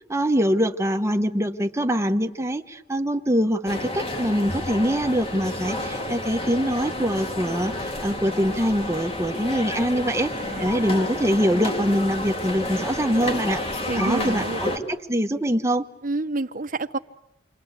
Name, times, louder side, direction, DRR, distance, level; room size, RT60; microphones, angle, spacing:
voice 1, 0.1-10.3 10.6-13.6 13.9-15.8, equal, 15° right, 6 dB, 1.2 m, -24 dB
sound 1, 3.7-14.8, left 1 dB, 35° left, 2.4 m, -30 dB
voice 2, 13.9-14.6 16.0-17.0, right 2 dB, 50° right, 9 dB, 1.1 m, -28 dB
28.5 x 23.5 x 8.3 m, 0.85 s
head